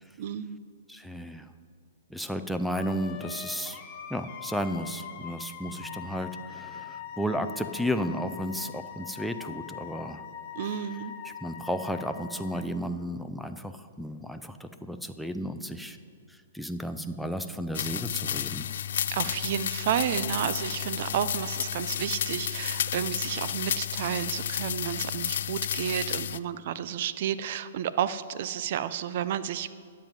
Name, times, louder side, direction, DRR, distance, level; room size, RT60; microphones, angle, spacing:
voice 1, 0.2-0.6 10.5-11.1 19.1-29.7, right 10 dB, 50° right, 14 dB, 0.5 m, -31 dB
voice 2, 0.9-1.5 2.1-3.8 4.1-10.2 11.2-16.0 16.3-18.7, equal, ahead, 9 dB, 0.5 m, -33 dB
Wind instrument woodwind instrument, 2.7-12.6, left 9 dB, 40° left, 1.1 m, -42 dB
sound 1, 5.7-11.3, right 3 dB, 75° right, 1.9 m, -56 dB
sound 2, 17.7-26.4, left 9 dB, 65° left, 0.3 m, -32 dB
11.5 x 7.5 x 5.2 m, 2.1 s
hypercardioid pair, 135°, 0 cm